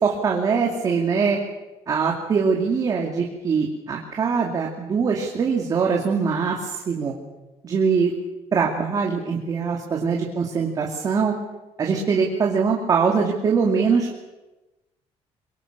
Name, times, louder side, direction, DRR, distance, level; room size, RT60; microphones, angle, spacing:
voice 1, 0.0-1.4 1.9-7.1 7.6-8.1 8.5-11.3 11.8-14.1, right 5 dB, 30° right, 0 dB, 2.6 m, -22 dB
24.5 x 23.0 x 6.7 m, 1.1 s
cardioid pair, 175°, 12 cm